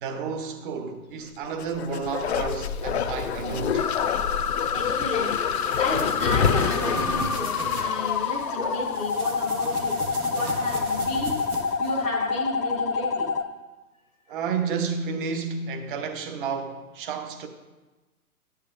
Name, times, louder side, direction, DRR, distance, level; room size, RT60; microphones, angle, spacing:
voice 1, 0.0-3.8 14.3-17.5, right 5 dB, 35° right, 0.8 m, -31 dB
Bark, 1.5-9.1 9.4-9.5, left 7 dB, 50° left, 0.5 m, -28 dB
sound 1, 3.8-13.4, left 5 dB, 85° left, 0.7 m, -27 dB
voice 2, 4.6-10.0 10.3-13.3, left 1 dB, 10° right, 0.6 m, -34 dB
sound 2, 5.3-7.9 8.8-12.0, right 3 dB, 70° right, 1.6 m, -37 dB
11.0 x 8.2 x 2.6 m
hypercardioid pair, 130°, 45 cm